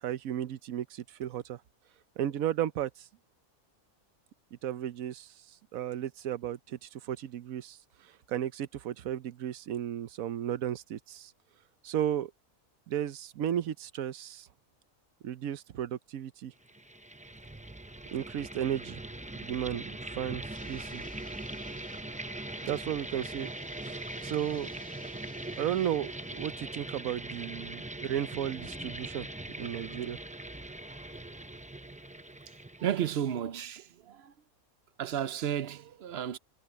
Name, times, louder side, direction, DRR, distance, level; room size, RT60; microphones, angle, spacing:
voice 1, 0.0-1.6 2.2-2.9 4.6-5.3 5.7-7.8 8.3-11.3 11.8-12.3 12.9-14.5 15.2-16.5 18.1-19.0 19.4-21.0 22.6-23.5 23.8-24.7 25.0-25.1 25.6-29.3 29.6-30.2, right 10 dB, 75° right, 1.1 m, -34 dB
sound 1, 16.6-33.3, right 1 dB, 10° right, 0.3 m, -41 dB
sound 2, 20.5-26.6, equal, 5° left, 3.2 m, -54 dB
voice 2, 32.8-34.3 35.0-36.4, right 10 dB, 55° right, 0.8 m, -33 dB
omnidirectional pair, 1.5 m